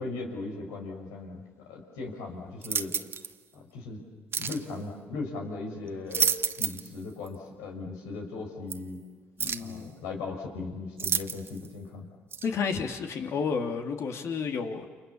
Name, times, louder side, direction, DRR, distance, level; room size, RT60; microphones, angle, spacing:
voice 1, 0.0-1.4 1.7-2.9 3.5-4.0 4.4-9.0 9.6-12.1, left 3 dB, 85° left, 2 dB, 5.8 m, -38 dB
sound 1, 2.6-3.3 4.3-4.6 5.9-6.9 7.3-7.4 8.7-8.8 9.4-9.7 11.0-11.7 12.3-12.5, right 6 dB, 45° right, 1.4 m, -30 dB
voice 2, 9.4-10.0 12.4-14.9, left 5 dB, 60° left, 4 dB, 3.3 m, -31 dB
29.5 x 28.0 x 7.2 m, 1.4 s
supercardioid pair, 60°, 5 cm